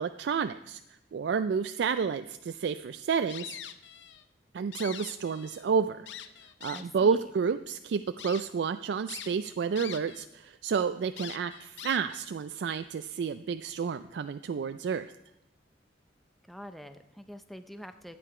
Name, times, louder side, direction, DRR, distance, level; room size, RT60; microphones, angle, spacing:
voice 1, 0.0-3.6 4.5-6.1 6.6-15.1, right 6 dB, 70° right, 10 dB, 0.3 m, -30 dB
sound 1, 3.3-4.2 4.6-5.6 6.1-7.0 7.6-7.7 8.2-8.4 9.1-10.2 10.5-10.6 11.2-12.3, left 10 dB, 80° left, 0.6 m, -43 dB
voice 2, 6.7-7.2 16.5-18.2, equal, ahead, 8 dB, 0.5 m, -45 dB
13.0 x 8.7 x 4.8 m, 0.87 s
head